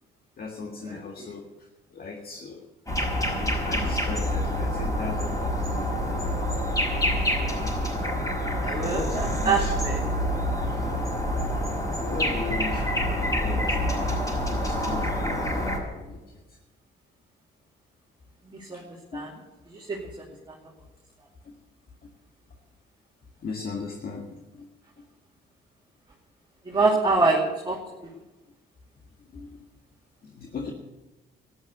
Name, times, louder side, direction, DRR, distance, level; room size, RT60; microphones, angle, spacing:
voice 1, 0.4-1.4 1.9-2.7 2.9-6.3 8.9-9.7 10.6-11.1 12.0-12.9 13.2-14.1 14.4-16.6 18.7-19.2 21.4-21.6 22.0-22.1 23.4-24.7 29.3-29.7 30.2-30.7, left 4 dB, 50° left, 2 dB, 1.8 m, -38 dB
voice 2, 0.9-1.3 8.6-10.0 18.5-18.8 19.1-19.3 19.7-20.1 20.5-20.6 26.7-27.8, right 3 dB, 20° right, -2 dB, 2.5 m, -25 dB
sound 1, 2.9-15.8, equal, 15° left, 5.5 m, -27 dB
13.5 x 11.0 x 7.9 m, 1.1 s
cardioid pair, 90°, 20 cm